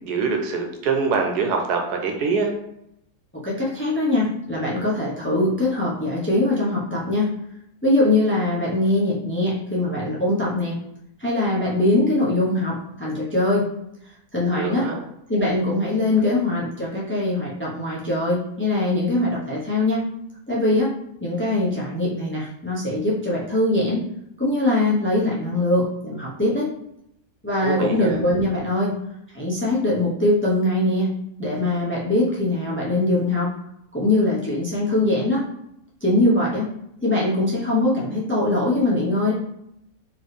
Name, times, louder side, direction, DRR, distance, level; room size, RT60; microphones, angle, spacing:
voice 1, 0.0-2.5 14.5-15.0 27.6-28.2, right 5 dB, 85° right, 3 dB, 1.3 m, -24 dB
voice 2, 3.4-7.3 7.8-10.8 11.2-13.7 14.3-14.9 15.3-20.0 20.5-20.9 21.2-24.0 24.4-26.7 27.4-28.9 29.3-31.1 31.4-33.5 33.9-35.4 36.0-36.7 37.0-39.3, left 2 dB, 10° left, -6 dB, 0.7 m, -22 dB
4.4 x 3.1 x 3.3 m, 0.78 s
omnidirectional pair, 1.7 m